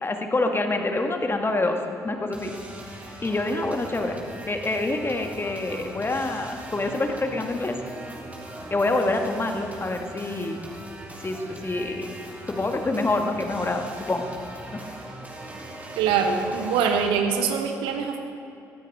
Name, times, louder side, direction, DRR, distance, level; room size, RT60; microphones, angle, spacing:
voice 1, 0.0-1.8 2.0-2.5 3.2-4.2 4.5-7.8 8.7-10.6 11.2-12.2 12.5-14.2 14.7-14.8, left 2 dB, 25° left, 4 dB, 1.8 m, -26 dB
sound 1, 2.3-17.1, right 1 dB, 15° right, 3.7 m, -40 dB
voice 2, 16.0-18.2, right 6 dB, 65° right, 5 dB, 1.2 m, -23 dB
19.5 x 15.5 x 3.7 m, 2.8 s
figure-of-eight pair, 45°, 9 cm